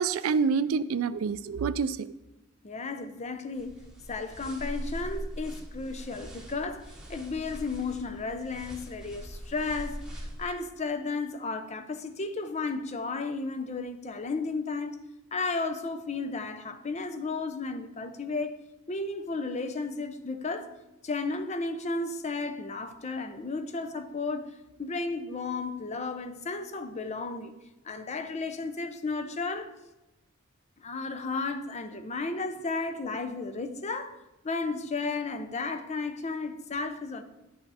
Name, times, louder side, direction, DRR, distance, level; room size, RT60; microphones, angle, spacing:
voice 1, 0.0-2.1, right 5 dB, 90° right, 0.4 m, -27 dB
voice 2, 2.6-3.8 4.1-15.0 15.3-18.6 18.9-20.7 21.0-24.5 24.8-27.5 27.8-29.7 30.8-34.1 34.4-37.2, left 3 dB, 35° left, 0.6 m, -33 dB
sound 1, 3.5-10.5, equal, 5° right, 1.3 m, -41 dB
10.0 x 5.7 x 4.1 m
head